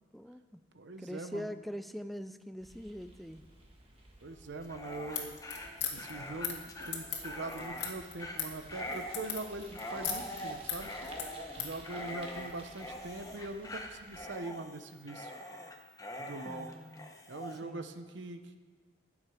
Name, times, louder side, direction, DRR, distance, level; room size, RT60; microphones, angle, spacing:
voice 1, 0.1-0.6 1.0-3.4 16.4-17.1 17.6-17.9, equal, ahead, 10 dB, 0.4 m, -43 dB
voice 2, 0.7-1.5 4.2-5.4 5.9-10.9 11.6-15.3 16.1-16.7 17.3-18.6, right 2 dB, 75° right, 8 dB, 0.9 m, -42 dB
Bicycle, 2.6-14.2, right 1 dB, 30° right, 1.6 m, -55 dB
Dog, 4.6-17.6, left 1 dB, 20° left, 1.0 m, -43 dB
sound 1, 5.1-11.8, left 8 dB, 70° left, 1.9 m, -39 dB
19.0 x 7.3 x 5.0 m, 1.5 s
head